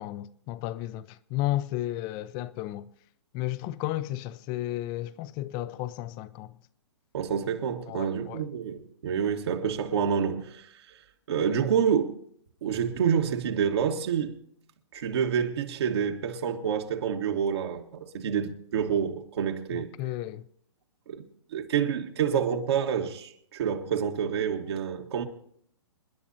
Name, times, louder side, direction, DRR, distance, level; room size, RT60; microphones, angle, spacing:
voice 1, 0.0-2.9 3.3-6.6 7.9-8.5 11.5-11.6 19.7-20.4, left 15 dB, 30° left, 0.5 m, -33 dB
voice 2, 7.1-10.7 11.3-12.2 12.6-14.3 14.9-19.9 21.1-21.2 21.5-25.3, right 7 dB, 60° right, 1.6 m, -28 dB
28.0 x 10.5 x 2.8 m
hypercardioid pair, 130°, 15 cm